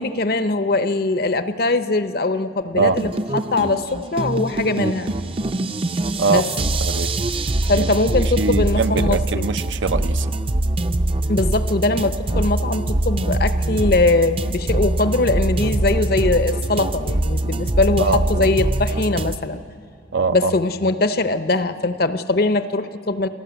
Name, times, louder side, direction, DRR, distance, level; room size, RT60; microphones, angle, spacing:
voice 1, 0.0-5.1 6.2-6.5 7.7-9.5 11.3-19.6 20.3-23.3, left 2 dB, 50° left, 11 dB, 0.7 m, -21 dB
sound 1, 2.8-19.4, right 1 dB, 30° right, 0.5 m, -23 dB
voice 2, 6.2-7.3 7.7-7.9 8.2-10.3 18.0-18.5 20.1-20.5, right 4 dB, 80° right, 11 dB, 0.6 m, -23 dB
28.0 x 12.0 x 8.0 m, 2.4 s
head